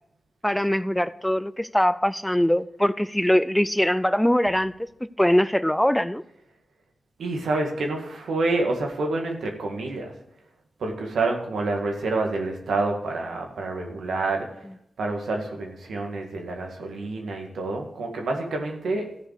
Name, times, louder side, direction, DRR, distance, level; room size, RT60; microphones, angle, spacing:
voice 1, 0.4-4.7 5.2-6.2, equal, 5° left, 0.4 m, -22 dB
voice 2, 7.2-10.1 10.8-14.5 15.0-19.1, right 2 dB, 90° right, 1.9 m, -28 dB
14.5 x 5.1 x 6.7 m
cardioid pair, 60°, 0 cm